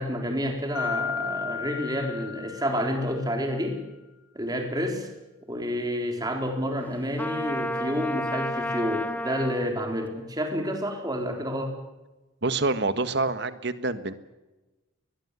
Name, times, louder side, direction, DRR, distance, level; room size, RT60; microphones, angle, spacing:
voice 1, 0.0-3.8 4.3-5.1 5.5-11.8, equal, 20° right, 3 dB, 3.9 m, -29 dB
Mallet percussion, 0.7-3.3, left 9 dB, 75° left, 4.8 m, -34 dB
Trumpet, 7.2-9.7, left 1 dB, 10° left, 1.2 m, -31 dB
voice 2, 12.4-14.1, right 3 dB, 50° right, 12 dB, 1.5 m, -26 dB
22.0 x 21.0 x 8.2 m, 1.1 s
head